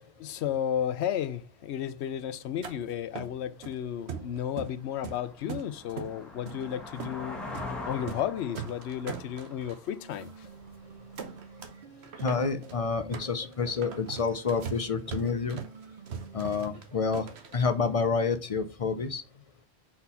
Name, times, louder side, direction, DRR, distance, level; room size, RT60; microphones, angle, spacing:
voice 1, 0.2-7.4 7.8-10.3, left 10 dB, 85° left, 0.9 m, -33 dB
sound 1, 2.6-2.8 3.2-3.8 4.1-4.8 5.0-6.1 6.5-6.6 7.0-7.2 7.5-7.7 8.0-8.3 8.6-9.8 10.2-10.3 10.6-10.8 11.2-11.8 12.0-17.7, right 6 dB, 75° right, 1.1 m, -40 dB
sound 2, 3.8-3.9 4.4-11.0, left 2 dB, ahead, 1.3 m, -43 dB
sound 3, 10.0-16.6, right 5 dB, 50° right, 0.9 m, -50 dB
voice 2, 12.2-15.6 16.3-17.2 17.5-19.2, left 5 dB, 40° left, 0.6 m, -28 dB
4.3 x 4.1 x 5.5 m
omnidirectional pair, 1.1 m